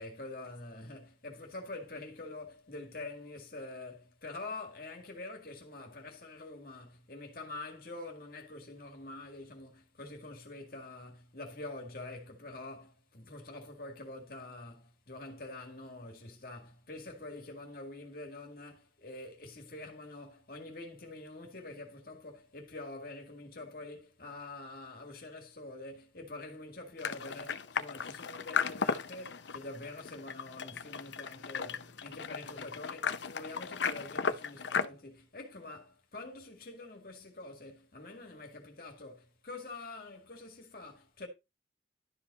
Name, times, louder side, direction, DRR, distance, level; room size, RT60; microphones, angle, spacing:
voice 1, 0.0-41.3, left 2 dB, 50° left, 2.0 m, -46 dB
sound 1, 27.0-34.9, left 6 dB, 75° left, 0.7 m, -35 dB
12.0 x 5.1 x 4.2 m
head